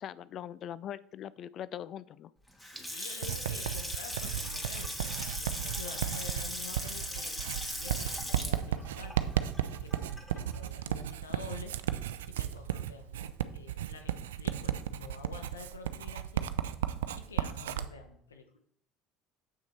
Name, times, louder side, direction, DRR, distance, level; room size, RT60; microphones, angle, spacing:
voice 1, 0.0-2.3, left 10 dB, 50° left, 18 dB, 0.4 m, -41 dB
Water tap faucet / Sink (filling or washing) / Splash splatter, 2.5-10.6, equal, 10° left, 2.3 m, -39 dB
voice 2, 2.8-9.2 9.8-11.7 12.3-16.9 17.2-18.6, left 5 dB, 90° left, 6 dB, 1.0 m, -49 dB
Writing, 3.2-17.9, right 11 dB, 80° right, 0.5 m, -34 dB
7.6 x 6.1 x 4.4 m, 0.66 s
hypercardioid pair, 65°, 0 cm